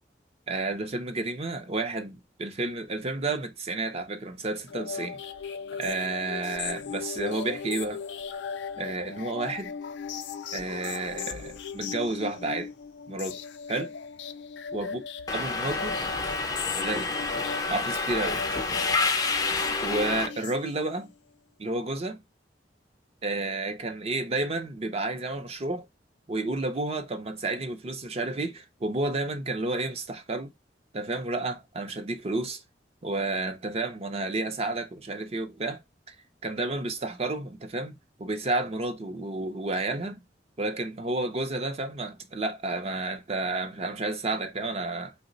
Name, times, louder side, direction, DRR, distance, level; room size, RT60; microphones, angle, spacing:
voice 1, 0.5-5.2 5.7-8.0 8.8-9.7 10.5-12.7 13.1-13.4 13.7-13.9 14.7-15.0 15.3-16.0 16.8-17.1 17.7-18.4 19.8-21.1 21.6-22.2 23.2-25.9 26.3-30.5 30.9-32.6 33.0-35.8 36.1-36.2 36.4-40.2 40.6-45.1, right 2 dB, 35° right, 0.5 m, -31 dB
sound 1, 4.7-21.1, left 6 dB, 80° left, 0.4 m, -38 dB
Subway metro underground, 15.3-20.3, left 3 dB, 20° left, 0.4 m, -28 dB
3.0 x 2.0 x 3.8 m
head